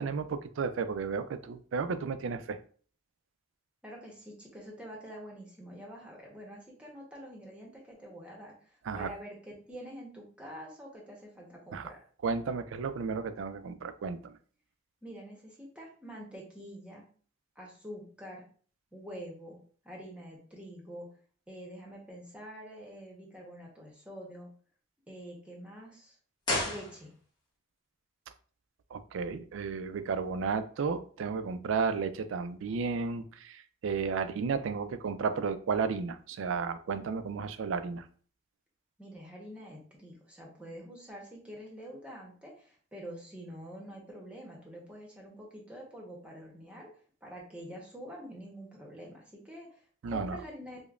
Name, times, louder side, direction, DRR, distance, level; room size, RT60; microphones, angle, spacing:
voice 1, 0.0-2.6 8.8-9.1 11.7-11.9 12.2-14.4 28.9-38.1 50.0-50.4, right 5 dB, 85° right, 11 dB, 0.3 m, -33 dB
voice 2, 3.8-12.0 15.0-17.1 17.6-18.4 18.9-19.6 19.8-21.1 21.5-24.5 25.1-26.1 26.6-27.1 39.0-46.9 47.2-50.8, equal, 5° right, -2 dB, 0.8 m, -46 dB
sound 1, 26.4-27.5 27.8-27.9, left 1 dB, 25° left, 0.9 m, -33 dB
4.9 x 2.1 x 2.4 m, 0.44 s
head